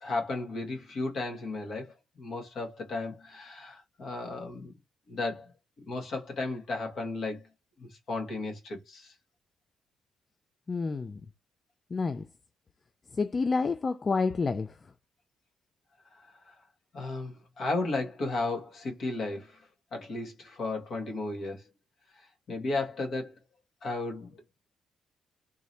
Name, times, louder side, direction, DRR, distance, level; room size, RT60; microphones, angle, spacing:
voice 1, 0.0-4.7 5.1-5.5 5.9-7.4 7.8-9.1 16.5-16.6 16.9-19.6 19.9-21.6 22.5-23.3 23.8-24.3, left 2 dB, 55° left, 1.8 m, -34 dB
voice 2, 10.7-11.2 11.9-12.2 13.1-14.8, left 4 dB, 35° left, 0.3 m, -29 dB
3.5 x 2.8 x 3.2 m
cardioid pair, 90°, 0 cm